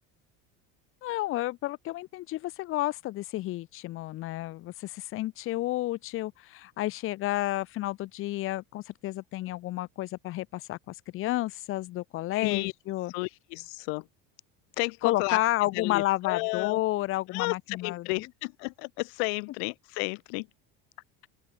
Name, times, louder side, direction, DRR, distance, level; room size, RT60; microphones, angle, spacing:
voice 1, 1.0-13.1 15.0-18.3, left 16 dB, 45° left, 0.7 m, -31 dB
voice 2, 12.3-12.7 13.1-14.0 14.8-15.4 15.7-16.8 17.3-20.5, left 40 dB or more, 75° left, 0.8 m, -32 dB
open air
supercardioid pair, 130°, 31 cm